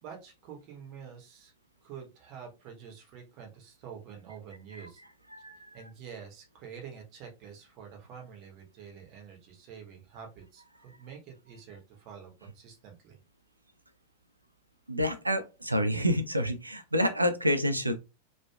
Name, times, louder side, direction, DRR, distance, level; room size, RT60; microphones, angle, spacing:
voice 1, 0.0-1.5 1.8-5.0 5.7-13.2, right 7 dB, 40° right, 1 dB, 0.9 m, -47 dB
voice 2, 5.3-5.7 14.9-17.9, equal, 85° right, 10 dB, 0.4 m, -28 dB
3.0 x 2.2 x 2.2 m, 0.28 s
figure-of-eight pair, 90°, 0 cm